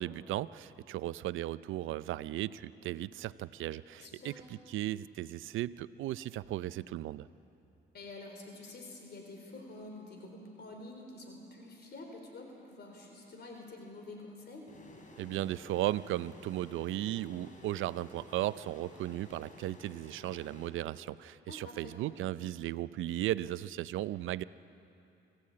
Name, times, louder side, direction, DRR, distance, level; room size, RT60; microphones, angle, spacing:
voice 1, 0.0-4.3 4.7-7.3 15.2-24.4, right 14 dB, 80° right, 16 dB, 0.6 m, -36 dB
voice 2, 3.9-4.4 7.9-14.7 21.5-22.0, left 2 dB, 55° left, 2 dB, 3.9 m, -48 dB
sound 1, 14.7-21.3, left 2 dB, 40° left, 3.5 m, -54 dB
25.5 x 16.5 x 8.6 m, 2.8 s
cardioid pair, 90°, 20 cm